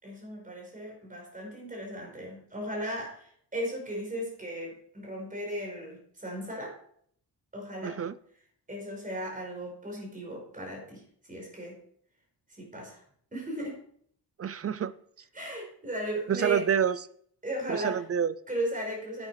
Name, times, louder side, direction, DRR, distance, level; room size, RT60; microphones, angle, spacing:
voice 1, 0.0-6.8 7.5-8.0 8.7-11.8 12.5-13.0 13.3-13.8 15.3-16.6 17.4-18.0 18.5-19.3, right 1 dB, 20° right, -1 dB, 5.1 m, -36 dB
voice 2, 7.8-8.1 14.4-14.9 16.3-17.0 17.7-18.3, right 8 dB, 35° right, 16 dB, 0.5 m, -27 dB
10.5 x 9.1 x 5.0 m, 0.62 s
wide cardioid pair, 160°, 41 cm